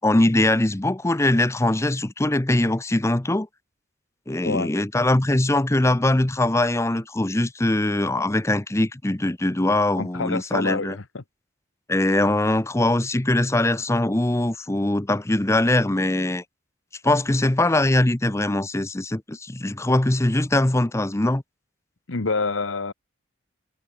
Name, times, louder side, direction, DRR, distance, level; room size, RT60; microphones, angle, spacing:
voice 1, 0.0-3.5 4.3-11.0 11.9-16.4 17.0-21.4, left 1 dB, 15° left, 0.7 m, -22 dB
voice 2, 10.0-11.2 22.1-22.9, left 3 dB, 75° left, 1.2 m, -27 dB
head